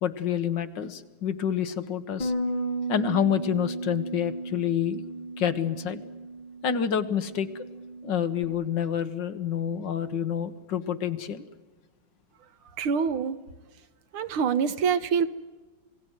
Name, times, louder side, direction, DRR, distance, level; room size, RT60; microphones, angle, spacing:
voice 1, 0.0-2.3 2.9-5.0 5.4-6.0 6.6-7.5 8.0-11.5, left 9 dB, 60° left, 10 dB, 1.7 m, -28 dB
Bass guitar, 2.2-8.4, right 2 dB, 25° left, 1.7 m, -34 dB
voice 2, 12.8-13.4 14.1-15.3, right 6 dB, 85° right, 13 dB, 1.9 m, -25 dB
27.5 x 18.5 x 7.9 m, 1.3 s
omnidirectional pair, 2.3 m